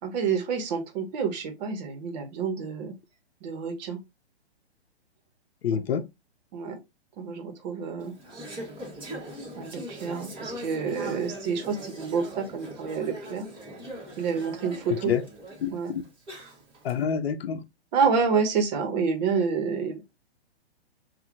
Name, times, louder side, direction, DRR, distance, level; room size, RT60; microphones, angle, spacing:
voice 1, 0.0-2.9 3.4-4.0 5.7-5.8 6.5-6.8 7.2-8.1 9.6-13.5 14.2-15.1 15.7-15.9 17.9-20.0, right 5 dB, 40° right, 1.3 m, -28 dB
voice 2, 5.6-6.0 15.1-15.2 15.6-16.0 16.8-17.6, left 7 dB, 65° left, 0.7 m, -27 dB
Conversation / Chatter, 8.0-16.9, equal, 15° right, 1.5 m, -41 dB
5.7 x 2.7 x 2.4 m
hypercardioid pair, 135°, 33 cm